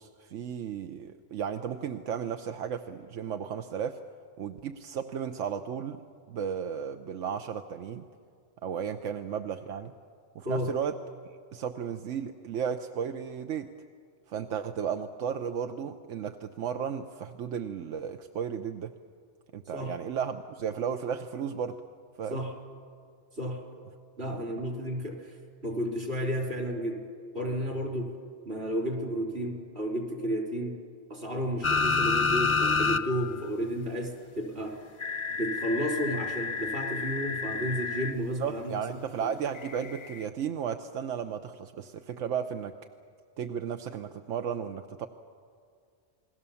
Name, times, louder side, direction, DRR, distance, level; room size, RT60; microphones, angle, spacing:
voice 1, 0.0-4.0 4.4-6.0 6.3-8.0 8.6-9.9 10.3-11.0 11.5-13.7 14.3-18.9 19.5-21.8 22.2-22.4 24.3-24.4 38.4-42.7 43.4-45.1, right 7 dB, 90° right, 7 dB, 1.1 m, -34 dB
voice 2, 24.2-25.4 25.6-27.0 27.3-28.1 28.5-30.8 31.1-34.8 35.3-38.7 39.2-39.3, equal, 60° right, 1 dB, 3.8 m, -32 dB
sound 1, 31.6-33.0 33.4-33.5 35.0-38.1 39.8-39.9, left 5 dB, 35° left, 0.5 m, -28 dB
29.0 x 20.5 x 7.1 m, 2.2 s
omnidirectional pair, 1.2 m